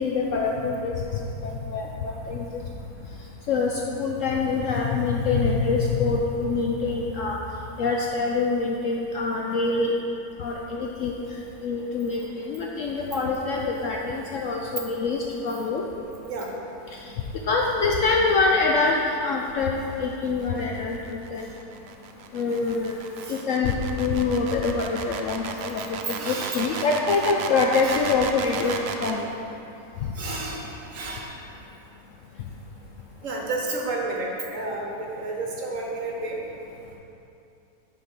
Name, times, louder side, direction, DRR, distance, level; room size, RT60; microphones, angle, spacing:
voice 1, 0.0-2.6 3.5-7.4 7.8-9.9 10.4-11.2 11.6-15.9 16.9-17.1 17.5-21.5 22.3-23.0 23.3-28.7 29.0-29.3 30.0-30.1, left 4 dB, 70° left, -1 dB, 0.8 m, -25 dB
sound 1, 20.0-29.2, right 6 dB, 85° right, 1.2 m, -34 dB
voice 2, 26.1-27.2 27.8-28.0 28.5-28.8 30.1-31.3 33.2-36.4, right 2 dB, 55° right, -1 dB, 1.2 m, -32 dB
8.1 x 4.1 x 5.9 m, 2.8 s
omnidirectional pair, 1.8 m